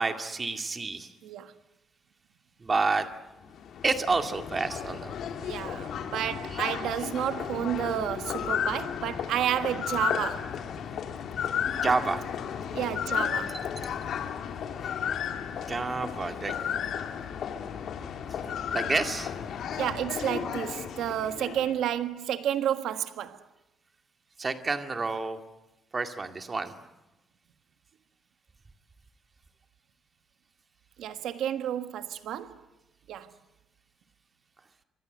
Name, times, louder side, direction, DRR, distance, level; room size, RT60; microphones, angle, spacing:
voice 1, 0.0-1.1 2.6-3.1 3.8-5.2 11.8-12.2 15.7-16.5 18.7-19.3 24.4-25.4 25.9-26.7, right 4 dB, 25° right, 2.2 m, -29 dB
voice 2, 1.2-1.5 5.4-10.5 12.7-13.6 19.8-23.4 31.0-32.6 33.1-33.3, right 10 dB, 90° right, 1.6 m, -31 dB
sound 1, 3.4-21.8, left 8 dB, 60° left, 3.1 m, -33 dB
28.5 x 25.5 x 8.0 m
cardioid pair, 170°, 0 cm